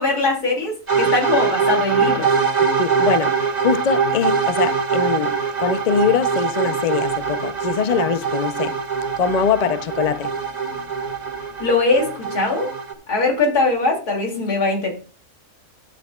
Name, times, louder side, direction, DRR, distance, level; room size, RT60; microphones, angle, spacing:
voice 1, 0.0-2.3 11.6-12.7 13.1-14.9, left 3 dB, 90° left, 3.2 m, -21 dB
sound 1, 0.9-12.9, right 5 dB, 25° right, 1.7 m, -22 dB
voice 2, 2.8-3.3 3.6-8.8 9.2-10.3 10.7-10.8, left 7 dB, 50° left, 0.4 m, -22 dB
13.5 x 8.5 x 2.4 m
omnidirectional pair, 1.6 m